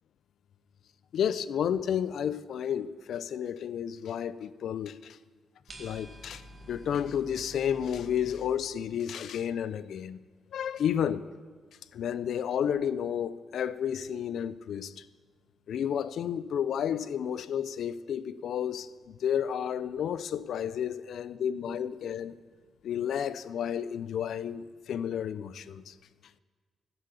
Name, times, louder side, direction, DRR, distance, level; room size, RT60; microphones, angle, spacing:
voice 1, 1.1-5.2 5.8-6.4 6.7-10.2 10.5-11.2 11.9-15.1 15.7-22.3 22.8-25.9, left 9 dB, 70° left, 0.5 m, -31 dB
sound 1, 5.7-8.6, equal, 35° right, 2.5 m, -48 dB
14.5 x 8.0 x 8.3 m
cardioid pair, 110°, 0 cm